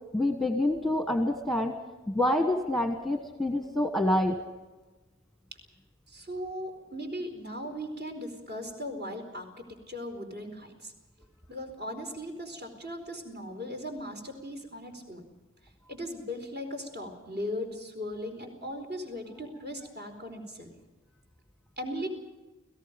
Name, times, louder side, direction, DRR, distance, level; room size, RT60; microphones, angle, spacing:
voice 1, 0.1-1.8 2.1-4.4, left 1 dB, ahead, 6 dB, 1.4 m, -27 dB
voice 2, 6.1-10.9 11.5-15.3 15.9-20.7 21.8-22.1, equal, 50° right, 3 dB, 4.4 m, -38 dB
29.5 x 17.5 x 5.3 m, 1.2 s
head